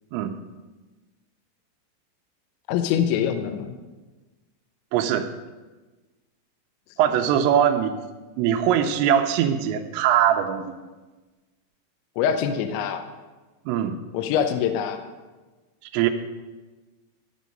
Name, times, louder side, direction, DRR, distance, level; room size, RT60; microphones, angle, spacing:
voice 1, 2.7-3.8 12.2-13.0 14.1-15.0, left 8 dB, 80° left, 8 dB, 2.8 m, -24 dB
voice 2, 4.9-5.3 7.0-8.0 8.4-10.7 13.7-14.0 15.9-16.1, right 9 dB, 80° right, 4 dB, 2.6 m, -21 dB
13.0 x 7.5 x 5.2 m, 1.2 s
omnidirectional pair, 5.7 m